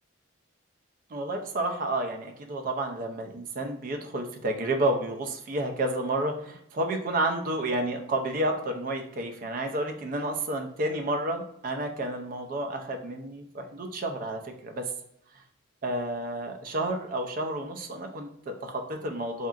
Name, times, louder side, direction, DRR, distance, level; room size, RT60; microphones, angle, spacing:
voice 1, 1.1-14.8 15.8-19.5, right 1 dB, 45° right, 4 dB, 0.4 m, -30 dB
2.8 x 2.4 x 2.3 m, 0.77 s
head